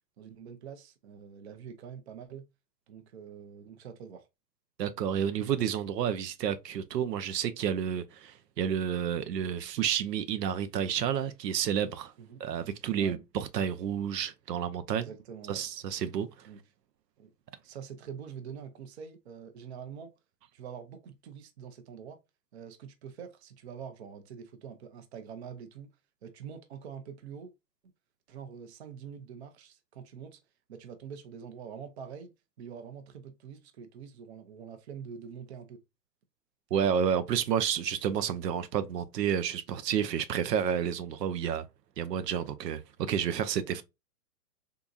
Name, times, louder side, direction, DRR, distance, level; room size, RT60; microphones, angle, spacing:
voice 1, 0.2-2.5 2.9-4.3 12.2-12.4 13.0-13.2 15.0-15.7 16.5-16.6 17.2-17.3 17.6-20.1 20.5-22.2 22.5-25.9 26.2-27.5 28.3-30.4 30.7-35.8, right 7 dB, 45° right, 0.6 m, -45 dB
voice 2, 4.8-12.1 12.4-15.1 15.5-16.5 36.7-41.7 42.0-43.8, right 8 dB, 85° right, 0.7 m, -30 dB
3.7 x 2.8 x 2.3 m
hypercardioid pair, 165°, 48 cm